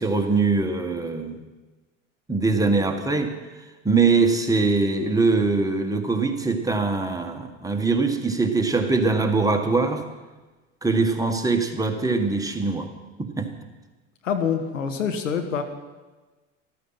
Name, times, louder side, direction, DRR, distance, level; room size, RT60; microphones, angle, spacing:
voice 1, 0.0-1.4 2.3-3.3 3.9-10.0 10.8-12.9 13.2-13.5, right 3 dB, 10° right, 3 dB, 1.8 m, -22 dB
voice 2, 14.2-15.6, left 7 dB, 85° left, 6 dB, 1.6 m, -25 dB
14.0 x 13.0 x 5.9 m, 1.2 s
hypercardioid pair, 80°, 37 cm